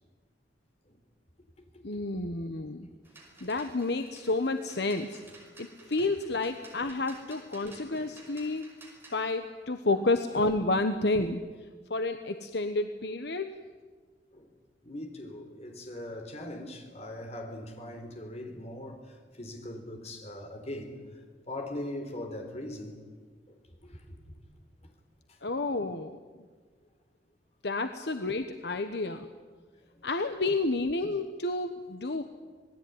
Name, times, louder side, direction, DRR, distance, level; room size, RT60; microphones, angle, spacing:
voice 1, 1.8-2.9 3.4-5.2 5.6-8.7 9.1-11.4 11.9-13.6 25.4-26.2 27.6-29.3 30.0-32.2, left 2 dB, 65° left, 1.2 m, -30 dB
sound 1, 3.0-9.2, right 2 dB, 15° right, 5.3 m, -54 dB
voice 2, 7.6-8.1 9.9-10.0 14.3-14.4 14.8-19.0 19.4-21.0 21.5-23.0 23.9-24.0, left 1 dB, 35° left, 3.9 m, -40 dB
26.5 x 19.5 x 9.6 m
head